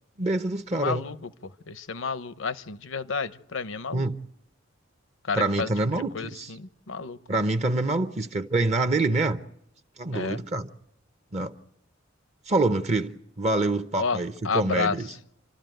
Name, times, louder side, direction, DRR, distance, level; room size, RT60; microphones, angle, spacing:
voice 1, 0.2-1.0 3.9-4.2 5.3-6.5 7.3-9.4 10.0-10.7 11.3-11.5 12.5-15.1, right 2 dB, 35° right, 0.8 m, -26 dB
voice 2, 0.7-4.1 5.3-7.2 10.1-10.4 14.0-15.0, left 5 dB, 85° left, 0.9 m, -31 dB
28.5 x 13.0 x 9.1 m
head